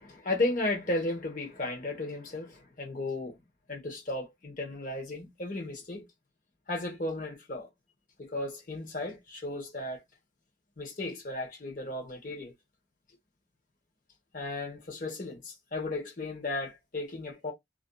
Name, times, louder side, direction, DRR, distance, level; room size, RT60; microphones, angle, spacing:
voice 1, 0.0-3.3 3.7-6.1 6.7-7.7 8.2-10.0 10.8-12.5 14.3-17.5, left 2 dB, 45° left, 1.0 m, -34 dB
2.5 x 2.4 x 2.2 m
head